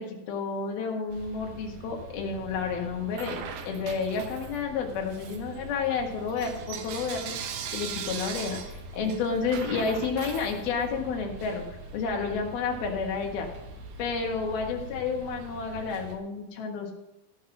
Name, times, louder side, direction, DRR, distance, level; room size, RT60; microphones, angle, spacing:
voice 1, 0.0-3.4 3.6-7.4 7.7-11.6 11.9-13.5 14.0-16.9, left 5 dB, 85° left, 2 dB, 3.5 m, -30 dB
sound 1, 1.1-16.2, right 1 dB, 65° right, 2.8 m, -44 dB
Bell / Coin (dropping), 3.1-4.7 5.1-11.1, right 8 dB, 90° right, 3.0 m, -39 dB
15.5 x 5.7 x 5.9 m, 0.91 s
omnidirectional pair, 4.2 m